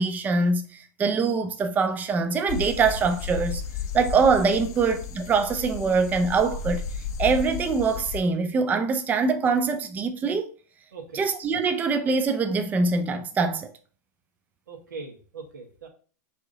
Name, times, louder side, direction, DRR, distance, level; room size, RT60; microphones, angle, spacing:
voice 1, 0.0-3.6 3.9-6.8 7.2-10.5 11.1-13.7, right 4 dB, 15° right, 0.4 m, -23 dB
sound 1, 2.5-8.2, left 6 dB, 35° left, 0.6 m, -33 dB
voice 2, 10.9-11.2 14.7-15.9, right 4 dB, 85° right, 1.3 m, -40 dB
4.8 x 2.7 x 3.7 m
hypercardioid pair, 120°, 10 cm